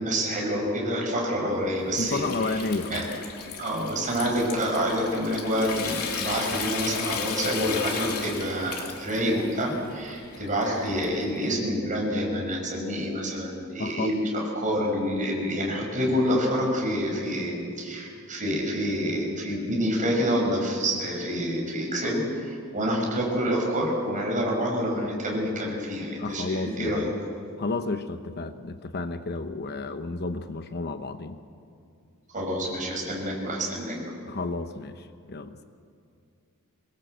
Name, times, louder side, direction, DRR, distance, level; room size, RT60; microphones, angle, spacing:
voice 1, 0.0-2.6 2.9-3.0 3.6-27.1 32.3-34.1, equal, 35° right, 0 dB, 6.2 m, -27 dB
Water tap faucet / Sink (filling or washing) / Trickle dribble, 1.5-11.4, left 6 dB, 80° left, 2.9 m, -36 dB
voice 2, 2.0-3.1 13.8-14.2 26.2-27.2 27.6-31.4 34.2-35.6, left 3 dB, 45° left, 9 dB, 0.9 m, -31 dB
24.5 x 20.5 x 8.0 m, 2.4 s
head